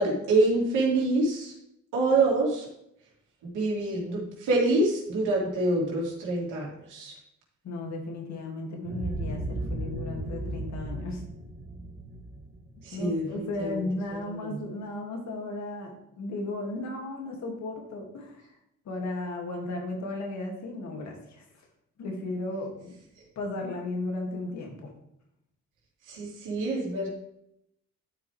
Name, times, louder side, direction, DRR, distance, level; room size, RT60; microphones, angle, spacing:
voice 1, 0.0-1.5 1.9-2.7 3.5-7.1 12.8-13.8 14.3-14.6 26.1-27.1, right 2 dB, 85° right, -3 dB, 2.9 m, -26 dB
voice 2, 7.6-11.2 12.9-18.6 18.9-21.4 22.0-22.9 23.4-24.9, left 2 dB, 65° left, 1 dB, 2.2 m, -35 dB
sound 1, 8.8-13.6, right 2 dB, 40° right, 2.2 m, -35 dB
12.0 x 4.9 x 3.3 m, 0.79 s
cardioid pair, 90°, 30 cm